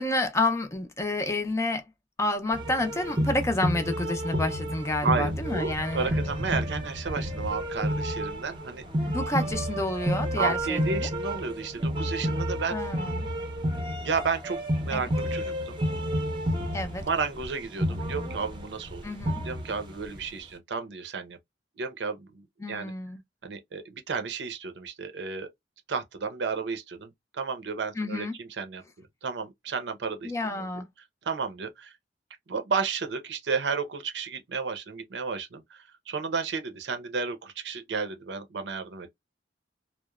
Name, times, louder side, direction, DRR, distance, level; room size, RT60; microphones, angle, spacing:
voice 1, 0.0-1.8 2.2-6.1 9.1-11.1 12.7-13.3 14.9-15.1 16.7-17.0 17.8-18.3 19.0-19.4 22.6-23.2 28.0-28.3 30.2-30.9, left 2 dB, 15° left, 0.4 m, -29 dB
sound 1, 2.5-20.3, equal, 30° right, 0.6 m, -31 dB
voice 2, 5.0-8.8 10.3-12.8 14.0-15.8 17.0-19.1 19.4-21.4 21.8-22.9 23.4-25.5 25.9-28.8 29.2-30.7 31.2-31.9 32.5-39.1, right 5 dB, 80° right, 0.6 m, -32 dB
2.9 x 2.0 x 2.3 m
head